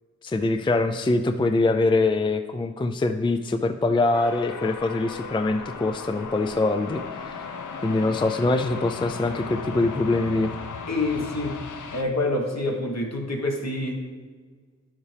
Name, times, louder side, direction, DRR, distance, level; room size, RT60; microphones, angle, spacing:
voice 1, 0.2-7.5 7.8-10.5, left 2 dB, 15° left, 8 dB, 0.4 m, -24 dB
sound 1, 4.1-12.0, left 5 dB, 85° left, 0.6 m, -36 dB
voice 2, 10.9-11.6 11.9-14.0, left 2 dB, 60° left, 1 dB, 1.4 m, -27 dB
11.0 x 7.2 x 3.4 m, 1.5 s
wide cardioid pair, 60°, 30 cm